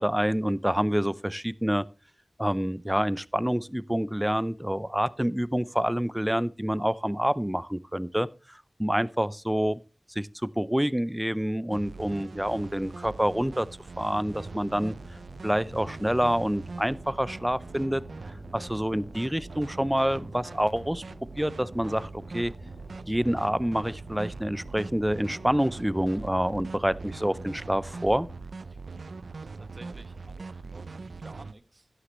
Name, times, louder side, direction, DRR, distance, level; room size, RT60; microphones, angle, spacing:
voice 1, 0.0-1.8 2.4-9.8 10.1-13.7 14.0-14.9 15.4-18.0 18.5-21.0 21.4-22.5 23.1-28.3, equal, 5° right, 0.5 m, -27 dB
sound 1, 11.7-31.5, right 4 dB, 85° right, 0.4 m, -42 dB
Boat Water vehicle, 14.0-28.3, left 1 dB, 45° left, 5.2 m, -49 dB
voice 2, 29.6-31.9, right 2 dB, 45° right, 1.3 m, -52 dB
11.0 x 10.0 x 3.1 m
wide cardioid pair, 60°, 0 cm